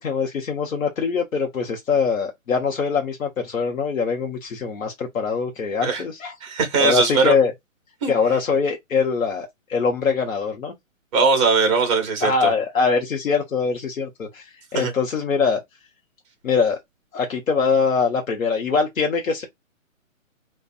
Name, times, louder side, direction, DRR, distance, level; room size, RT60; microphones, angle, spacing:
voice 1, 0.0-6.3 6.8-7.5 8.1-10.7 12.2-14.4 14.7-15.6 16.4-16.8 17.1-19.4, left 5 dB, 80° left, 0.8 m, -23 dB
voice 2, 6.4-7.3 8.0-8.1 11.1-12.5 14.7-14.9, right 4 dB, 25° right, 0.8 m, -20 dB
2.7 x 2.2 x 2.4 m
hypercardioid pair, 140°, 40 cm